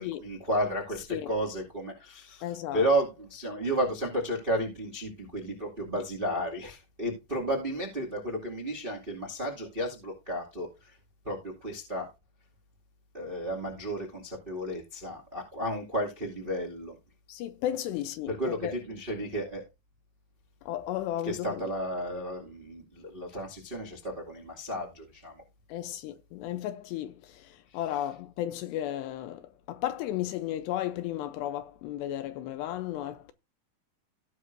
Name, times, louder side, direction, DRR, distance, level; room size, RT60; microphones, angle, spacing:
voice 1, 0.0-11.0 11.2-12.1 13.1-17.0 18.3-19.6 21.2-25.4 27.7-27.8, equal, 50° right, 0.6 m, -33 dB
voice 2, 2.4-2.9 17.3-18.3 18.6-18.7 20.6-21.6 25.7-33.3, left 12 dB, 80° left, 2.6 m, -34 dB
17.5 x 6.2 x 2.6 m
omnidirectional pair, 5.3 m